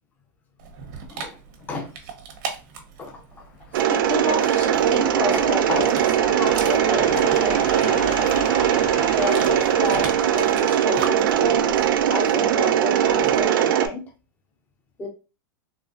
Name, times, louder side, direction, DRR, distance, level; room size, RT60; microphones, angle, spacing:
Dog, 0.6-13.5, right 5 dB, 60° right, 0.9 m, -39 dB
voice 1, 1.6-1.9 3.0-3.5 3.9-8.4 9.1-11.8 12.1-14.0 15.0-15.1, left 3 dB, 15° left, 2 dB, 0.5 m, -30 dB
sound 1, 3.4-11.9, left 6 dB, 65° left, 0.5 m, -37 dB
Mechanisms, 3.7-13.9, right 10 dB, 80° right, 0.4 m, -20 dB
3.8 x 2.0 x 2.5 m, 0.31 s
supercardioid pair, 150°, 11 cm